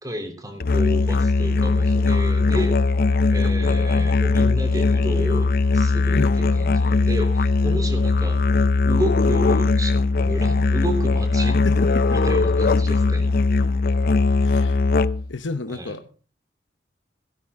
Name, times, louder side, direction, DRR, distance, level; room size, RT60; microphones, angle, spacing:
voice 1, 0.0-2.8 3.3-8.4 8.8-11.7 12.1-13.3 15.7-16.0, equal, 20° right, 6 dB, 3.2 m, -31 dB
Musical instrument, 0.6-15.3, left 3 dB, 55° left, 0.5 m, -19 dB
voice 2, 6.1-6.4 11.6-12.0 14.4-14.8 15.3-16.0, left 3 dB, 90° left, 8 dB, 0.9 m, -30 dB
17.0 x 13.0 x 3.7 m, 0.40 s
head